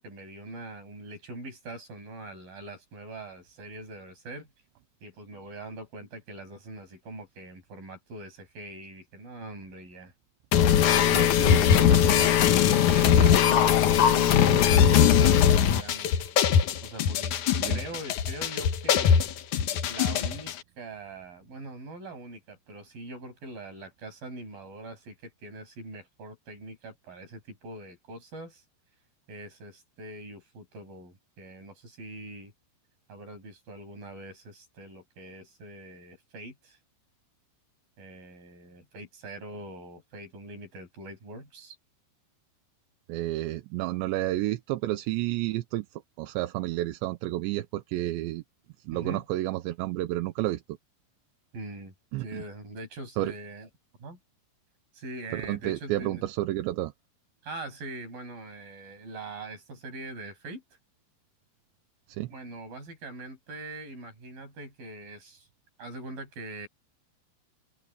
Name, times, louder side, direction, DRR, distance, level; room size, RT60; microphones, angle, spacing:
voice 1, 0.0-4.5 5.0-10.1 11.1-16.1 16.8-17.3 17.7-19.3 19.9-28.6 29.3-32.5 33.1-36.8 38.0-41.8 48.9-49.2 51.5-51.9 52.2-53.7 54.0-54.2 54.9-56.2 57.4-60.6 62.3-65.5 65.8-66.7, right 2 dB, 45° right, 9.2 m, -42 dB
sound 1, 10.5-20.5, left 9 dB, 75° left, 1.8 m, -21 dB
voice 2, 43.1-48.4 48.9-50.6 52.1-52.4 53.2-53.3 55.3-56.9 62.1-62.3, right 16 dB, 75° right, 3.0 m, -30 dB
open air
omnidirectional pair, 5.5 m